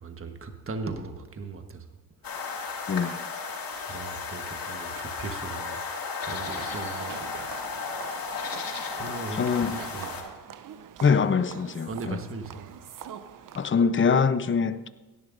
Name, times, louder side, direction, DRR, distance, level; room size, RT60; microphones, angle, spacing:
voice 1, 0.0-1.8 2.4-2.6 3.9-5.8 6.2-7.7 9.0-9.4 9.7-10.2 11.9-12.7, right 3 dB, 30° right, 1.4 m, -38 dB
sound 1, 2.2-10.2, left 4 dB, 55° left, 2.5 m, -34 dB
sound 2, 6.4-13.7, right 8 dB, 50° right, 0.7 m, -44 dB
voice 2, 9.3-9.8 11.0-12.2 13.5-14.9, left 5 dB, 30° left, 0.7 m, -24 dB
17.0 x 11.0 x 2.7 m
supercardioid pair, 70°, 41 cm